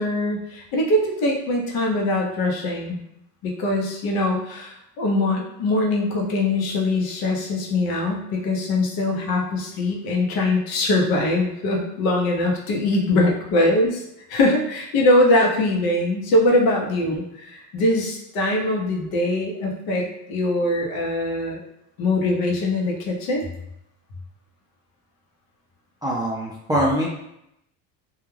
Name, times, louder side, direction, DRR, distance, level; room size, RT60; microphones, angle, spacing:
voice 1, 0.0-3.0 3.4-14.0 14.3-21.6 22.0-23.4, left 1 dB, 65° left, 0 dB, 0.8 m, -22 dB
voice 2, 26.0-27.1, equal, 10° right, -4 dB, 0.4 m, -23 dB
2.3 x 2.3 x 3.1 m, 0.81 s
cardioid pair, 115°, 40 cm